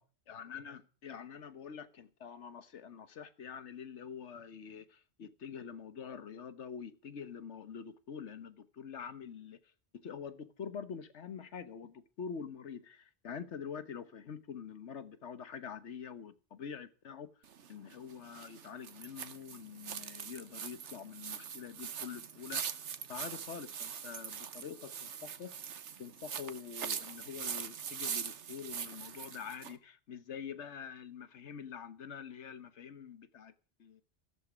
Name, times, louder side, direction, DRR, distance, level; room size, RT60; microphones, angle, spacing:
voice 1, 0.3-9.6 9.9-17.3 17.7-22.8 23.1-25.5 26.0-33.5 33.8-34.0, left 7 dB, 85° left, 1.4 m, -46 dB
sound 1, 17.4-29.8, right 8 dB, 80° right, 1.3 m, -42 dB
15.5 x 13.0 x 5.1 m
omnidirectional pair, 1.2 m